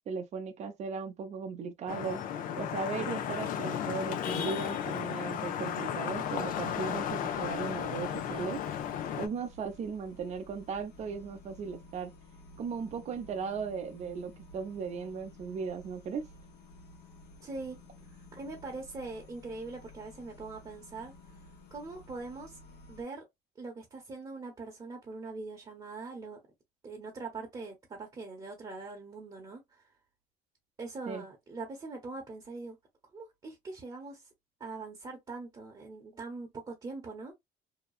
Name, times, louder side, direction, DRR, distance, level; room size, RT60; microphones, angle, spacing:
voice 1, 0.1-2.2 2.6-8.6 9.2-12.1 12.6-16.3 31.1-31.2, right 6 dB, 45° right, 0.7 m, -37 dB
Vehicle horn car horn honking / Traffic noise roadway noise, 1.9-9.3, left 9 dB, 55° left, 0.6 m, -34 dB
sound 1, 6.1-23.0, left 2 dB, 75° left, 1.1 m, -53 dB
voice 2, 17.4-17.8 18.3-21.1 21.7-22.6 22.9-23.2 23.6-26.4 26.8-29.8 30.8-32.8 33.1-34.2 34.6-37.3, right 3 dB, 25° right, 1.0 m, -42 dB
2.9 x 2.3 x 2.4 m
cardioid pair, 120°, 17 cm